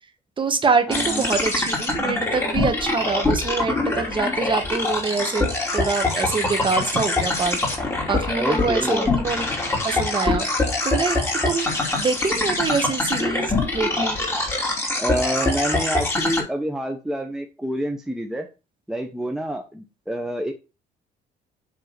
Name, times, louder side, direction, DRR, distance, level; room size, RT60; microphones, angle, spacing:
voice 1, 0.4-5.5 5.7-7.6 8.0-9.5 9.8-10.5 10.8-14.2, right 4 dB, 30° right, 7 dB, 1.6 m, -25 dB
sound 1, 0.9-16.4, left 2 dB, 15° left, 2.9 m, -24 dB
voice 2, 0.9-1.3 8.4-9.1 15.0-18.5 18.9-20.5, right 1 dB, 5° right, 3 dB, 0.9 m, -27 dB
8.0 x 3.6 x 6.7 m, 0.30 s
cardioid pair, 110°, 17 cm